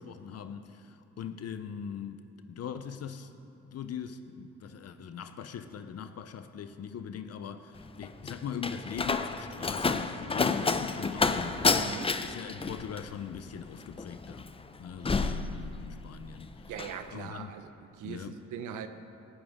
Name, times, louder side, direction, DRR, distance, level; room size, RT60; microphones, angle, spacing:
voice 1, 0.0-3.3 3.7-11.6 12.2-14.5 14.8-16.7 17.1-17.5 18.0-18.4, left 7 dB, 55° left, 10 dB, 0.7 m, -41 dB
Slam, 7.7-16.2 16.5-17.0, left 4 dB, 20° left, 0.6 m, -30 dB
voice 2, 11.7-12.1 16.7-18.9, right 7 dB, 85° right, 8 dB, 0.9 m, -41 dB
18.5 x 13.5 x 3.6 m, 2.6 s
cardioid pair, 90°, 30 cm